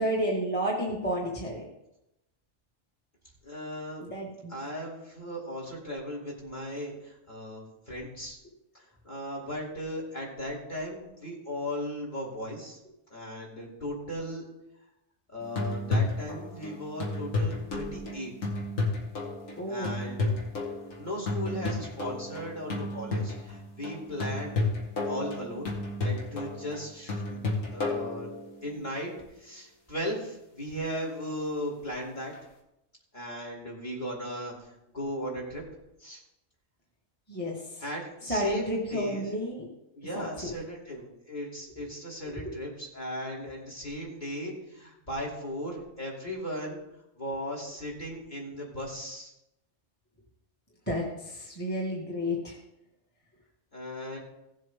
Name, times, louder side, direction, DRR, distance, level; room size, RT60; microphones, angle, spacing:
voice 1, 0.0-1.6 4.0-4.5 19.6-19.9 37.3-37.8 38.3-39.7 40.1-40.5 42.2-42.4 50.9-52.6, equal, 10° left, -4 dB, 1.7 m, -31 dB
voice 2, 3.4-4.1 4.5-8.4 8.7-12.8 13.1-14.4 15.3-18.5 19.7-20.3 21.0-24.6 25.1-25.7 26.0-27.4 27.7-28.3 28.6-29.1 29.4-32.3 33.1-35.6 36.0-36.2 37.8-39.3 39.9-46.8 47.2-49.3 53.7-54.2, equal, 35° left, -3 dB, 3.1 m, -37 dB
sound 1, 15.4-28.8 32.3-32.4, left 2 dB, 85° left, 2.1 m, -32 dB
16.5 x 7.5 x 3.6 m, 0.88 s
omnidirectional pair, 1.3 m